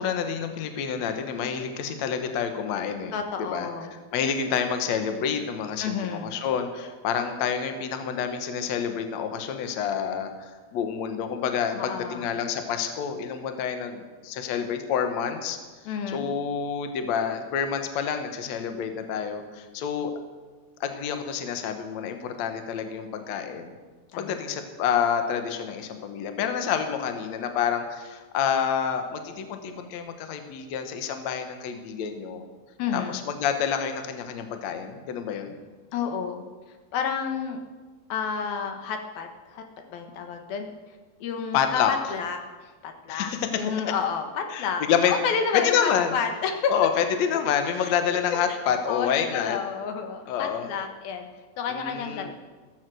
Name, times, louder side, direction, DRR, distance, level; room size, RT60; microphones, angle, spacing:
voice 1, 0.0-3.1 3.4-3.7 4.1-15.6 16.1-20.1 20.8-23.7 24.2-32.4 32.9-35.6 41.5-41.9 43.1-43.4 44.5-45.1 45.6-46.1 46.7-49.6 50.3-50.7 51.7-52.3, left 7 dB, 60° left, 6 dB, 2.3 m, -28 dB
voice 2, 3.1-3.9 5.8-6.3 11.7-12.3 15.8-16.3 24.1-24.4 32.8-33.2 35.9-37.6 38.1-39.6 39.9-43.3 43.6-46.7 47.8-47.9 48.5-48.6 48.9-51.3 51.6-52.3, left 6 dB, 85° left, 5 dB, 3.3 m, -30 dB
15.5 x 14.5 x 6.3 m, 1.3 s
omnidirectional pair, 4.1 m